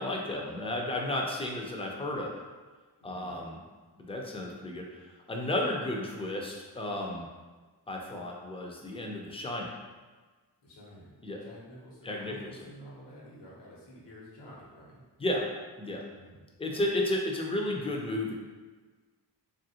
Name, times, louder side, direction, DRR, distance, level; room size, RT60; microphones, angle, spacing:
voice 1, 0.0-2.4 3.0-3.6 4.0-7.3 7.9-9.7 11.2-11.4 12.0-12.5 15.2-15.5 15.8-16.0 16.6-18.3, left 1 dB, 15° left, 0 dB, 0.4 m, -33 dB
voice 2, 3.0-3.4 10.6-11.1 11.4-15.0 16.1-16.4, equal, 85° left, -5 dB, 1.0 m, -50 dB
3.1 x 2.5 x 2.7 m, 1.4 s
wide cardioid pair, 105°, 41 cm